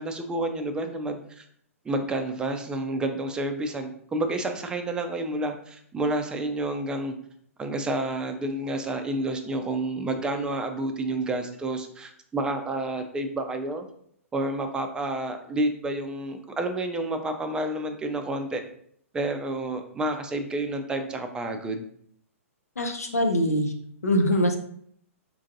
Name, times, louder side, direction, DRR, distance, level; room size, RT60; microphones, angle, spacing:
voice 1, 0.0-1.4 1.8-7.1 7.6-13.9 14.3-18.6 19.1-21.8, right 2 dB, 10° right, 6 dB, 0.4 m, -29 dB
voice 2, 22.8-23.7 24.0-24.6, equal, 85° left, 4 dB, 0.6 m, -23 dB
4.5 x 2.5 x 2.6 m, 0.65 s
figure-of-eight pair, 115°, 8 cm